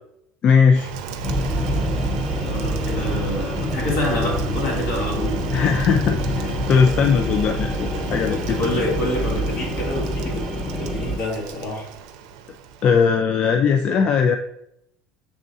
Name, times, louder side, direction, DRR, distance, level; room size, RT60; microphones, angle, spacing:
voice 1, 0.4-0.9 5.5-8.8 12.8-14.4, left 6 dB, 40° left, 5 dB, 0.3 m, -19 dB
Rain, 0.8-13.2, right 6 dB, 80° right, 0.5 m, -34 dB
sound 1, 1.2-11.2, equal, 5° left, 0.7 m, -26 dB
voice 2, 2.4-5.4 8.5-10.4 10.8-11.9, left 1 dB, 65° left, -2 dB, 1.7 m, -27 dB
5.4 x 3.6 x 2.6 m, 0.76 s
supercardioid pair, 120°, 3 cm